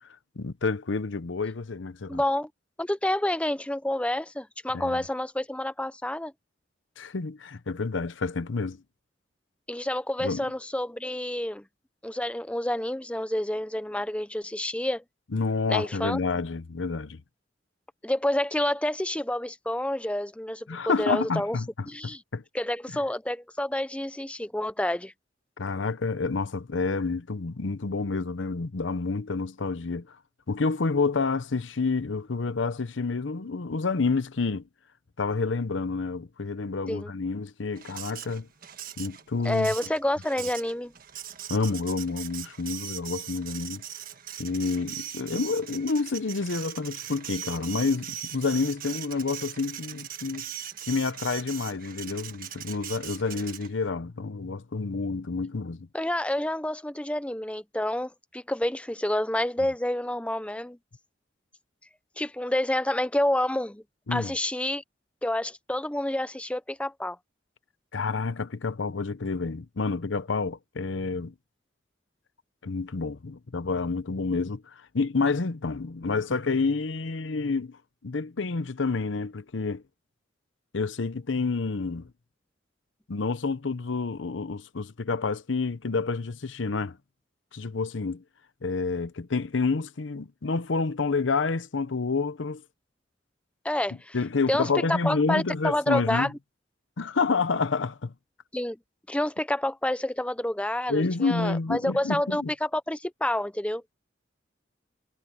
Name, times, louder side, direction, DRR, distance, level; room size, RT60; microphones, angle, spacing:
voice 1, 0.4-2.2 4.7-5.0 7.0-8.8 10.2-10.5 15.3-17.2 20.7-22.4 22.9-23.0 25.6-30.1 30.5-34.6 35.2-38.5 39.0-39.7 41.5-43.8 44.4-50.5 50.8-55.9 64.1-64.3 67.9-71.3 72.6-79.8 80.7-82.1 83.1-87.0 87.5-88.2 88.6-92.6 94.1-96.3 97.0-98.1 100.9-102.5, left 4 dB, 90° left, 0.8 m, -29 dB
voice 2, 2.1-2.5 2.8-6.3 9.7-11.6 12.0-15.0 15.7-16.2 18.0-21.6 21.9-22.2 22.5-25.1 36.9-37.1 39.4-40.9 55.9-60.8 62.2-63.8 64.1-64.8 65.2-67.2 93.6-94.2 94.5-96.3 98.5-98.8 99.1-103.8, left 1 dB, 5° left, 0.7 m, -28 dB
Printer, 37.8-53.9, right 10 dB, 50° right, 1.5 m, -40 dB
head